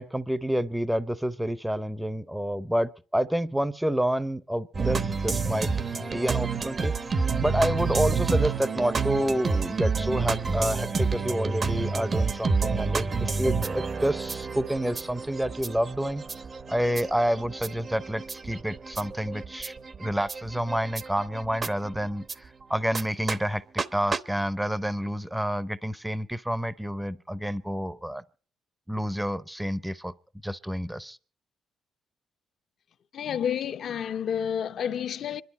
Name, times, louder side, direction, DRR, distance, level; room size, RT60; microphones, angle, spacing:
voice 1, 0.0-5.7 6.0-16.2 16.7-19.7 20.0-28.2 28.9-30.1 30.4-31.2, equal, 5° right, 0.6 m, -29 dB
sound 1, 4.7-22.3 22.9-23.0 23.3-23.4 23.8-23.9 24.1-24.2, right 4 dB, 40° right, 0.8 m, -29 dB
voice 2, 33.1-35.4, left 8 dB, 65° left, 0.7 m, -30 dB
25.5 x 11.5 x 4.2 m
cardioid pair, 90°, 0 cm